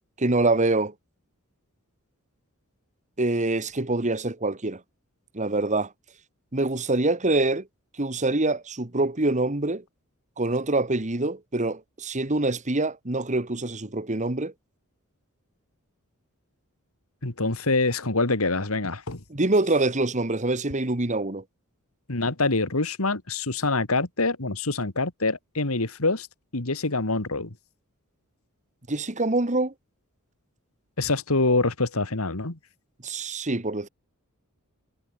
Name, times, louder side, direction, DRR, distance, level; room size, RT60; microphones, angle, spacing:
voice 1, 0.2-0.9 3.2-4.8 5.3-5.9 6.5-7.7 8.0-9.8 10.4-14.5 19.3-21.4 28.9-29.7 33.0-33.9, right 2 dB, 35° right, 1.7 m, -25 dB
voice 2, 17.2-19.2 22.1-26.3 26.5-27.5 31.0-32.6, left 3 dB, 75° left, 2.4 m, -25 dB
head